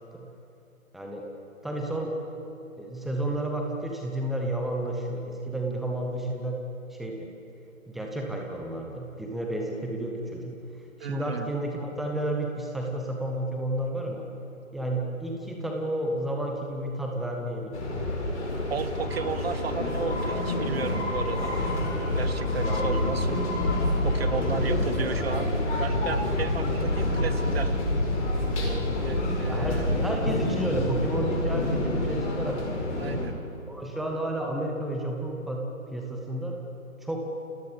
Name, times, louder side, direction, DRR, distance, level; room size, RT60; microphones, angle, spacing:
voice 1, 0.9-1.3 1.6-2.2 2.8-6.6 6.9-7.3 7.9-10.6 11.0-14.3 14.7-17.9 22.5-23.0 29.4-33.2 33.7-36.6 37.0-37.2, right 1 dB, ahead, 1 dB, 0.8 m, -31 dB
voice 2, 11.0-11.5 18.7-21.5 22.1-23.5 24.0-27.8 29.0-29.8 32.9-33.3, right 6 dB, 45° right, 11 dB, 1.6 m, -34 dB
sound 1, 17.7-33.3, left 1 dB, 55° left, 6.7 m, -27 dB
29.5 x 27.5 x 5.2 m, 2.7 s
figure-of-eight pair, 140°, 41 cm